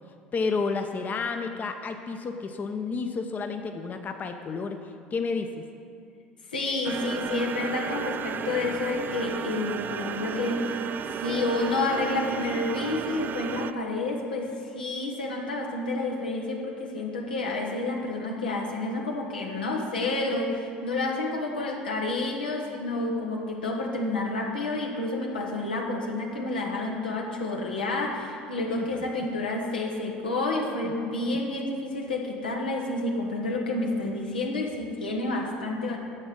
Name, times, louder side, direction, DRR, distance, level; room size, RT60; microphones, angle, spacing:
voice 1, 0.3-5.5 28.7-29.0 30.3-30.4 30.8-30.9 31.3-31.4 35.0-35.1, left 4 dB, 35° left, 6 dB, 0.8 m, -31 dB
voice 2, 6.5-10.9 11.2-36.0, left 2 dB, 85° left, 0 dB, 1.4 m, -29 dB
sound 1, 6.8-13.7, right 7 dB, 40° right, 0.5 m, -33 dB
9.7 x 7.2 x 6.3 m, 2.4 s
hypercardioid pair, 70°, 5 cm